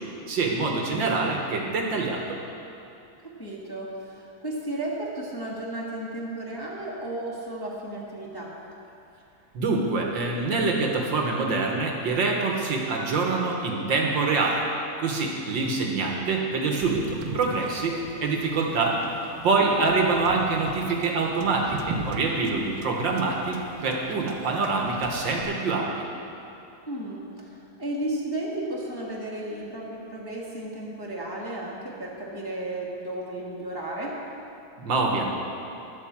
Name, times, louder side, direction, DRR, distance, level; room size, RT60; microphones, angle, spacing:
voice 1, 0.3-2.4 9.5-14.6 15.0-19.0 19.4-26.1 34.8-35.3, right 3 dB, 65° right, 0 dB, 1.8 m, -25 dB
voice 2, 3.2-8.5 19.7-19.9 26.9-34.1, right 1 dB, 10° left, -5 dB, 1.4 m, -34 dB
Wind / Boat Water vehicle, 16.8-25.4, right 3 dB, 85° right, 1.7 m, -39 dB
11.0 x 8.5 x 7.3 m, 2.7 s
omnidirectional pair, 2.3 m